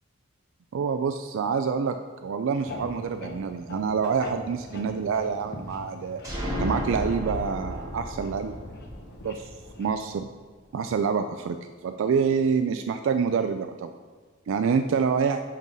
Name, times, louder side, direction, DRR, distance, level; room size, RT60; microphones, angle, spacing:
voice 1, 0.7-2.0 2.2-6.2 6.6-8.5 9.2-9.5 9.8-10.3 10.7-11.6 11.8-13.9 14.5-15.4, right 6 dB, 60° right, 7 dB, 0.3 m, -26 dB
sound 1, 2.6-10.0, left 1 dB, 50° left, 0.9 m, -42 dB
sound 2, 6.2-9.9, equal, 15° right, 1.7 m, -33 dB
6.1 x 5.3 x 5.3 m, 1.5 s
head